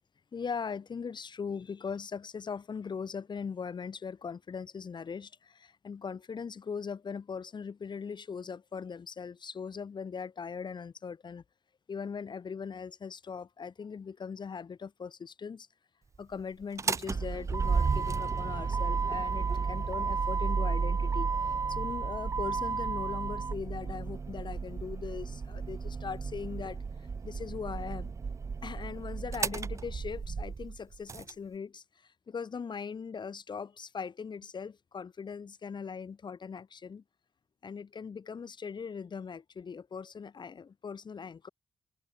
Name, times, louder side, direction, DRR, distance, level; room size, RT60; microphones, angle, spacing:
voice 1, 0.3-11.4 11.9-15.7 16.2-21.3 21.7-26.8 27.2-28.1 28.6-31.8 32.3-37.0 37.6-41.5, left 6 dB, 35° left, 1.0 m, -40 dB
Motor vehicle (road), 16.6-31.3, right 5 dB, 25° right, 0.3 m, -32 dB
wide cardioid pair, 155°, 13 cm